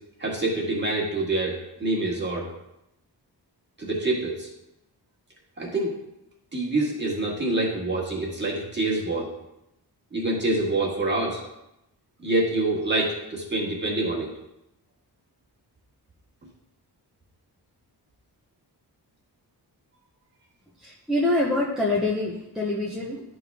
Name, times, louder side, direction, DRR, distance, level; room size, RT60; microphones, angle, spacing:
voice 1, 0.2-2.5 3.8-4.5 5.6-5.9 6.5-9.3 10.1-11.4 12.2-14.3, right 2 dB, 25° right, -3 dB, 1.8 m, -26 dB
voice 2, 20.8-23.2, left 2 dB, ahead, -5 dB, 0.8 m, -25 dB
11.5 x 3.9 x 3.5 m, 0.87 s
wide cardioid pair, 145°, 40 cm